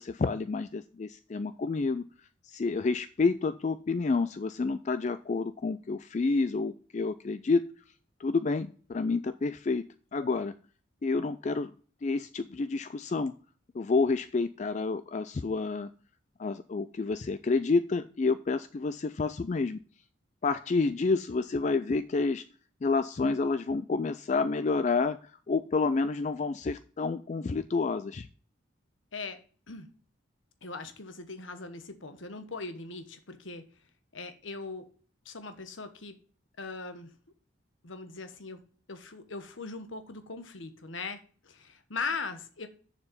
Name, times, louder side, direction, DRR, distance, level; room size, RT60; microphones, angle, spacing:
voice 1, 0.0-2.0 2.4-7.6 8.2-9.8 10.1-10.5 11.0-11.7 12.0-13.3 13.7-15.9 16.4-19.8 20.4-22.4 22.8-28.3, left 4 dB, 40° left, 12 dB, 0.3 m, -29 dB
voice 2, 30.6-33.6 34.1-34.9 35.2-36.2 36.6-37.1 37.8-38.6 38.9-42.7, left 4 dB, 90° left, 9 dB, 1.3 m, -39 dB
7.0 x 6.7 x 5.3 m, 0.41 s
head